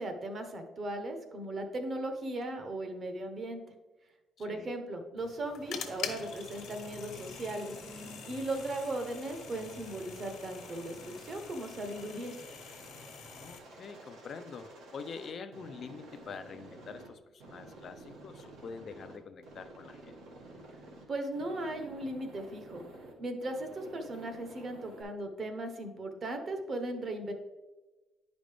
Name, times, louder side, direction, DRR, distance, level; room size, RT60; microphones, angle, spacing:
voice 1, 0.0-3.6 4.4-7.7 8.2-12.3 21.1-22.8 23.2-27.3, right 1 dB, 30° right, 6 dB, 0.8 m, -37 dB
voice 2, 4.4-4.7 13.3-20.2, left 5 dB, 40° left, 9 dB, 0.3 m, -46 dB
sound 1, 5.2-13.6, left 7 dB, 70° left, 1.0 m, -45 dB
Aircraft, 5.6-17.1 17.4-19.2 19.4-21.0 21.3-23.1 23.4-25.0, right 2 dB, 90° right, 1.8 m, -51 dB
10.5 x 5.1 x 3.3 m, 1.2 s
cardioid pair, 175°, 0 cm